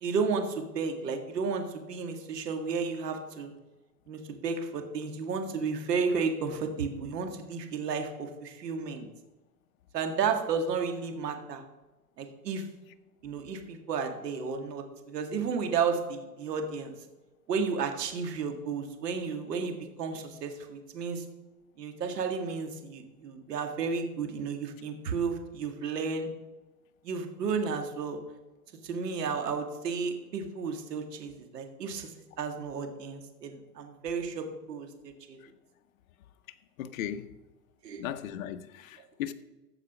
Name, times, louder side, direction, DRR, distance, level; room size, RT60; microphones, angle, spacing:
voice 1, 0.0-3.5 4.1-9.1 9.9-11.6 12.2-12.6 13.2-16.9 17.5-21.3 21.8-26.3 27.0-28.2 28.8-32.1 32.4-35.4 37.8-38.0, right 5 dB, 80° right, 1.9 m, -32 dB
voice 2, 36.8-37.3 38.0-39.3, left 10 dB, 55° left, 0.9 m, -36 dB
15.0 x 5.0 x 6.0 m
hypercardioid pair, 145°, 48 cm